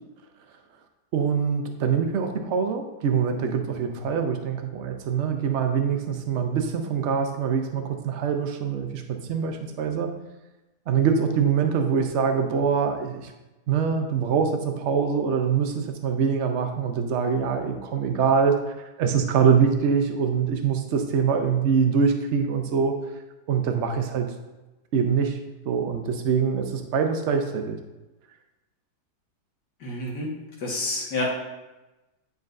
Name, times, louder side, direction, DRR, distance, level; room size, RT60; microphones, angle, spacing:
voice 1, 1.1-10.1 10.9-13.3 13.7-18.6 19.0-22.9 23.5-24.3 24.9-25.4 25.7-27.8, right 6 dB, 55° right, 5 dB, 0.8 m, -24 dB
voice 2, 29.8-30.3 30.6-31.2, left 2 dB, 80° left, -3 dB, 2.1 m, -29 dB
9.6 x 5.3 x 2.6 m, 1.1 s
omnidirectional pair, 1.8 m